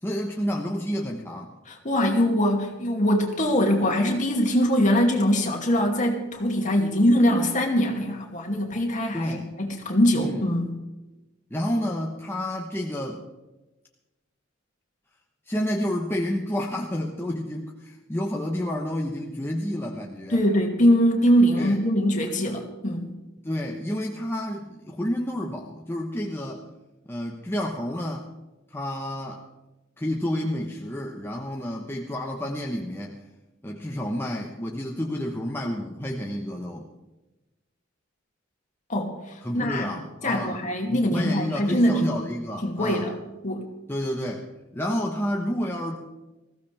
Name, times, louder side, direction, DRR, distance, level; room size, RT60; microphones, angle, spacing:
voice 1, 0.0-1.5 9.1-9.5 10.1-10.5 11.5-13.2 15.5-20.4 21.6-21.8 23.4-26.6 27.1-28.3 28.7-29.4 30.0-33.2 33.6-36.9 39.4-40.6 40.8-43.1 43.9-44.5 44.7-46.0, left 1 dB, 10° left, 0 dB, 1.1 m, -30 dB
voice 2, 1.7-10.7 20.3-23.1 38.9-39.9 40.2-42.1 42.6-43.2 43.4-43.7, equal, 40° left, 1 dB, 2.6 m, -22 dB
20.5 x 15.5 x 3.5 m, 1.0 s
head